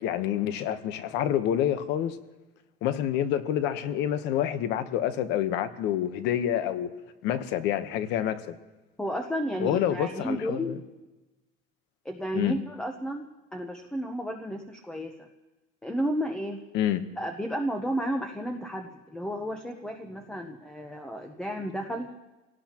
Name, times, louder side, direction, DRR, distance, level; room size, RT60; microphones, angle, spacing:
voice 1, 0.0-2.2 2.8-6.9 7.2-8.5 9.6-10.8 12.3-12.6 16.7-17.0, left 10 dB, 55° left, 1.1 m, -27 dB
voice 2, 9.0-10.7 12.0-15.3 15.8-16.6 17.2-22.1, equal, 5° left, 0.8 m, -32 dB
26.5 x 18.0 x 3.0 m
cardioid pair, 170°, 21 cm